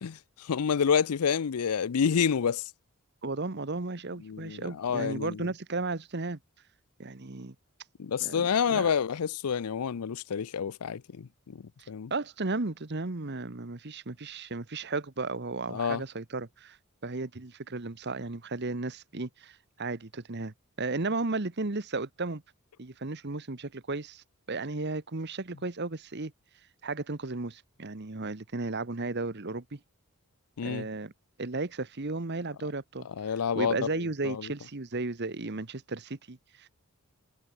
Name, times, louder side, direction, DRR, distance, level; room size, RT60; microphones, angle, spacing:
voice 1, 0.0-2.7 4.2-5.5 8.0-12.1 15.7-16.0 30.6-30.9 33.2-33.9 34.2-34.5, left 7 dB, 85° left, 0.5 m, -29 dB
voice 2, 3.2-6.4 7.0-7.5 8.2-8.9 11.8-16.8 17.0-22.4 22.8-26.3 26.8-29.8 30.6-31.1 31.4-36.7, right 3 dB, 50° right, 1.2 m, -34 dB
head